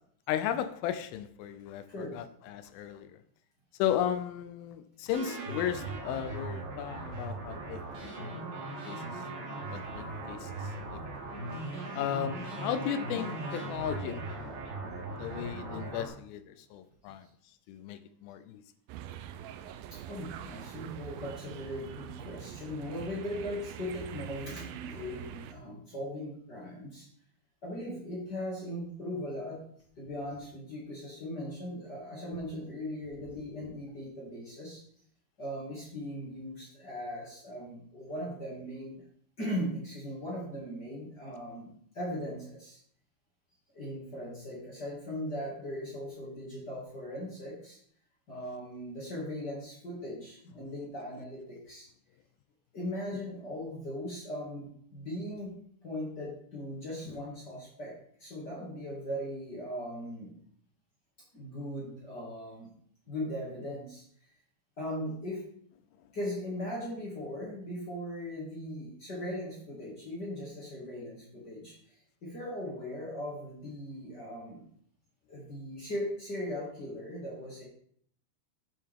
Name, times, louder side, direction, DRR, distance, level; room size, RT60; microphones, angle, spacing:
voice 1, 0.3-3.2 3.8-7.8 8.2-8.5 8.9-9.0 9.7-10.5 11.9-14.6 15.2-17.3 17.7-18.6, left 10 dB, 80° left, 2.2 m, -35 dB
sound 1, 5.1-16.1, right 2 dB, 65° right, 3.6 m, -39 dB
sound 2, 18.9-25.5, right 10 dB, 80° right, 2.2 m, -44 dB
voice 2, 19.9-27.1 27.6-29.6 30.0-34.8 35.4-39.0 39.4-42.8 43.7-47.8 48.3-51.9 52.7-55.5 55.8-57.9 58.2-60.3 61.3-62.7 63.1-64.0 64.8-65.4 66.1-71.7 72.2-74.6 75.3-77.6, equal, 35° left, 2.0 m, -39 dB
9.5 x 7.0 x 3.6 m
omnidirectional pair, 4.6 m